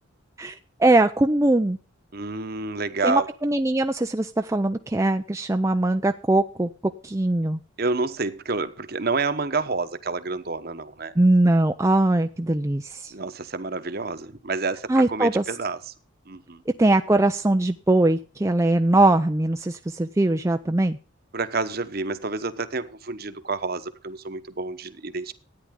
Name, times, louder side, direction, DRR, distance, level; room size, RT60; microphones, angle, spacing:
voice 1, 0.4-1.8 3.0-6.7 7.0-7.6 11.2-13.1 14.9-15.4 16.7-21.0, right 2 dB, 15° right, 6 dB, 0.5 m, -21 dB
voice 2, 2.1-3.3 7.8-11.1 13.1-15.8 16.3-16.6 21.3-25.3, right 3 dB, 50° right, 10 dB, 1.1 m, -29 dB
13.5 x 9.6 x 3.7 m, 0.38 s
head